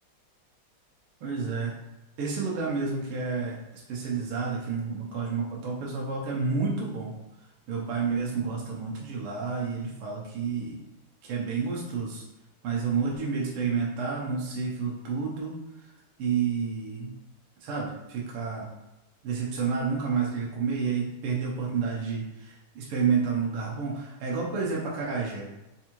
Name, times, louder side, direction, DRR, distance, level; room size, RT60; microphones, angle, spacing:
voice 1, 1.2-1.7 2.2-7.1 7.7-10.8 11.2-12.2 12.6-15.5 16.2-17.1 17.6-18.7 19.2-25.5, right 5 dB, 80° right, -3 dB, 1.7 m, -30 dB
4.7 x 3.5 x 3.0 m, 0.99 s
omnidirectional pair, 2.4 m